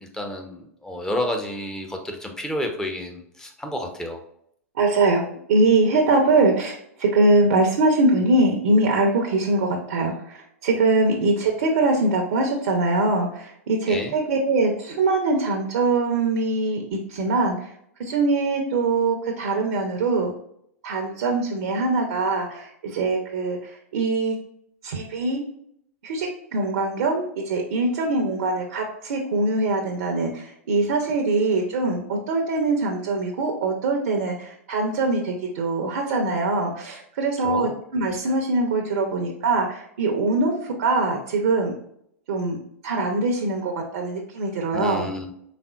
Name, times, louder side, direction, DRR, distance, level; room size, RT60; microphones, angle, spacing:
voice 1, 0.0-4.2 13.9-14.1 37.4-37.7 44.7-45.3, left 1 dB, 5° left, 3 dB, 0.7 m, -30 dB
voice 2, 4.7-17.7 18.0-20.3 20.8-24.4 24.8-25.4 26.0-41.7 42.3-42.6 42.8-45.1, right 2 dB, 60° right, 2 dB, 0.7 m, -23 dB
4.2 x 3.5 x 2.3 m, 0.71 s
figure-of-eight pair, 95°, 8 cm